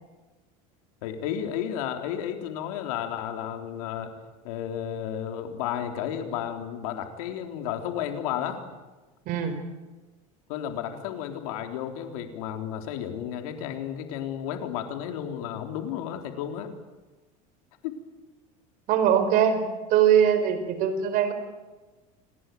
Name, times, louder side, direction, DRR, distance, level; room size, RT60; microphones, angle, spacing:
voice 1, 1.0-4.1 4.4-8.6 10.5-16.7 17.8-17.9, left 9 dB, 80° left, 5 dB, 3.8 m, -32 dB
voice 2, 18.9-19.6 19.9-21.3, right 9 dB, 50° right, 9 dB, 4.8 m, -21 dB
27.5 x 19.5 x 9.5 m, 1.2 s
supercardioid pair, 150°, 18 cm